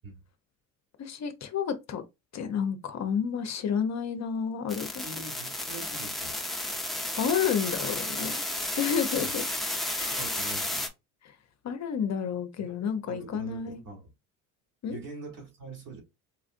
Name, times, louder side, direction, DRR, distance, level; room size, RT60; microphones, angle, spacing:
voice 1, 1.0-2.0 2.3-5.1 7.2-8.4 8.8-9.4 9.9-10.3 11.6-13.8 14.8-15.0, left 7 dB, 45° left, 0.7 m, -30 dB
sound 1, 4.7-10.9, left 1 dB, ahead, 0.8 m, -32 dB
voice 2, 5.0-6.4 9.1-9.4 10.1-10.9 12.6-14.1 14.9-16.0, right 3 dB, 55° right, 2.2 m, -43 dB
4.4 x 2.4 x 2.5 m
hypercardioid pair, 65°, 39 cm